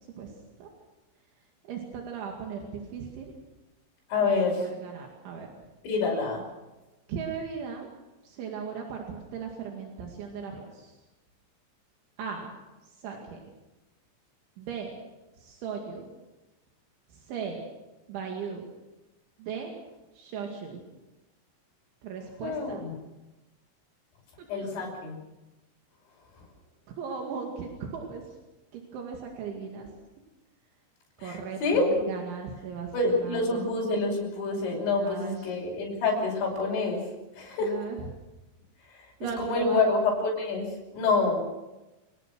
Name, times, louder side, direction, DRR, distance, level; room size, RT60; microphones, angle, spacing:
voice 1, 1.6-3.3 4.2-5.5 7.1-7.9 8.2-10.9 12.2-12.5 12.9-13.4 14.6-14.9 15.4-16.1 17.1-17.6 18.1-18.7 19.4-19.7 20.1-20.8 22.0-22.8 24.6-24.9 26.9-28.4 28.7-29.9 31.2-33.7 35.0-35.6 37.6-38.1 39.2-40.0, right 6 dB, 75° right, 1 dB, 4.6 m, -37 dB
voice 2, 4.1-4.6 5.8-6.4 22.4-22.9 24.5-25.2 31.2-32.0 32.9-37.0 37.3-37.7 39.0-39.1 39.4-41.4, left 3 dB, 70° left, -1 dB, 7.8 m, -27 dB
28.0 x 18.5 x 6.3 m, 1.1 s
omnidirectional pair, 5.5 m